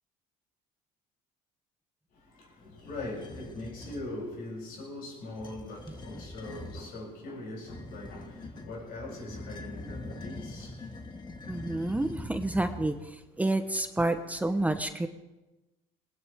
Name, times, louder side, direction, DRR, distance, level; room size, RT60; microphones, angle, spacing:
voice 1, 2.1-11.0 11.2-11.3 11.7-12.0, left 2 dB, 75° left, -2 dB, 7.7 m, -41 dB
sound 1, 2.8-4.1 5.2-6.9 7.6-13.2, left 2 dB, 30° left, 2.0 m, -43 dB
voice 2, 11.5-12.9 13.4-15.1, right 2 dB, 10° right, 8 dB, 1.0 m, -29 dB
20.5 x 19.5 x 3.6 m, 1.1 s
cardioid pair, 100°, 16 cm